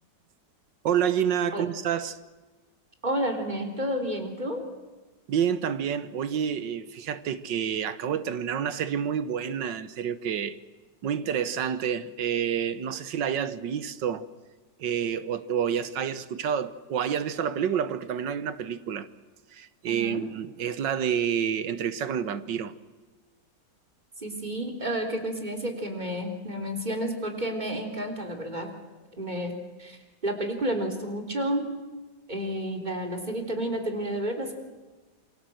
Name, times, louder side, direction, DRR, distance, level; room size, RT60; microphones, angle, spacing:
voice 1, 0.8-2.2 5.3-10.6 11.0-14.3 14.8-19.1 19.5-22.7, right 8 dB, 75° right, 1.7 m, -28 dB
voice 2, 3.0-4.6 19.9-20.2 24.2-28.7 29.2-29.5 29.8-31.6 32.3-34.5, right 1 dB, 25° right, 3.7 m, -31 dB
28.0 x 23.5 x 7.8 m
omnidirectional pair, 2.0 m